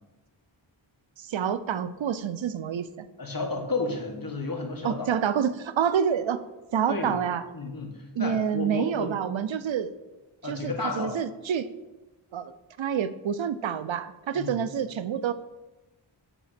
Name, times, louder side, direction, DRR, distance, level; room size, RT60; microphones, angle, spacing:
voice 1, 1.2-3.1 4.8-6.4 6.7-7.4 8.2-9.9 10.4-11.7 12.3-12.5 12.8-15.3, right 8 dB, 75° right, 13 dB, 0.5 m, -28 dB
voice 2, 3.2-5.1 6.9-7.2 7.5-9.1 10.4-11.1 14.3-14.6, left 3 dB, 45° left, 2 dB, 1.5 m, -32 dB
7.0 x 4.2 x 5.7 m, 1.0 s
wide cardioid pair, 65°, 47 cm